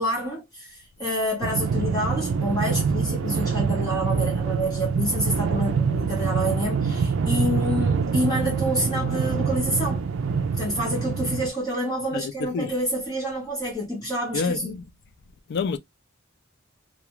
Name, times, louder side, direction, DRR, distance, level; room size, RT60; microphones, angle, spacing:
voice 1, 0.0-10.0 10.3-14.7, equal, 20° left, 1.0 m, -28 dB
sound 1, 1.4-11.5, right 5 dB, 75° right, 0.4 m, -25 dB
voice 2, 12.1-12.7 14.3-14.8 15.5-15.8, left 5 dB, 55° left, 0.3 m, -28 dB
2.3 x 2.2 x 2.9 m
head